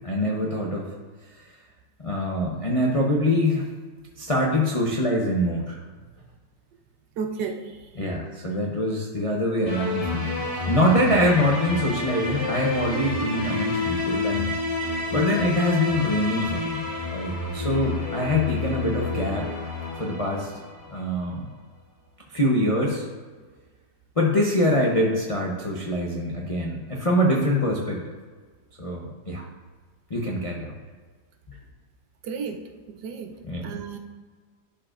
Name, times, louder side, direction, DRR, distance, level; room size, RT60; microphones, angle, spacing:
voice 1, 0.0-0.9 1.4-1.5 2.0-3.7 4.2-5.8 7.9-14.6 15.1-16.9 17.1-19.5 19.9-20.5 20.9-21.5 22.3-23.0 24.2-28.0 28.8-29.4 30.1-30.7 31.5-31.6 33.4-33.8, left 1 dB, 55° left, -3 dB, 0.3 m, -24 dB
voice 2, 7.2-7.7 32.2-32.6 32.9-33.3 33.6-34.0, right 5 dB, 70° right, 6 dB, 1.2 m, -32 dB
sound 1, 9.6-21.0, left 3 dB, 30° left, 0.8 m, -29 dB
11.5 x 5.0 x 2.5 m, 1.5 s
omnidirectional pair, 1.9 m